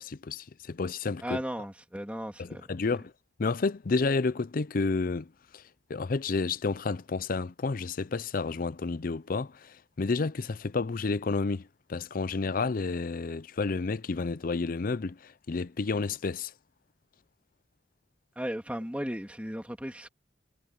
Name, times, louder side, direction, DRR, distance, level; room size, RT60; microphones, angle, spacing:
voice 1, 0.0-1.4 2.4-3.1 3.4-5.6 5.9-16.5, left 4 dB, 50° left, 0.5 m, -30 dB
voice 2, 1.2-2.6 18.4-20.1, equal, 10° right, 3.1 m, -35 dB
head